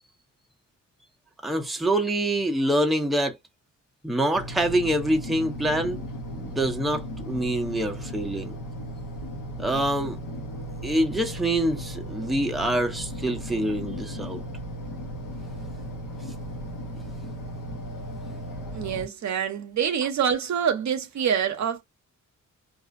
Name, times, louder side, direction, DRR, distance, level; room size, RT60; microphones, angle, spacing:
voice 1, 1.4-3.4 4.0-6.0 6.3-8.6 9.6-10.2 10.8-14.4, right 1 dB, ahead, 0.6 m, -25 dB
sound 1, 4.3-19.1, equal, 70° left, 0.9 m, -36 dB
voice 2, 18.7-21.8, right 8 dB, 60° right, 0.6 m, -26 dB
2.4 x 2.1 x 2.4 m
cardioid pair, 65°, 33 cm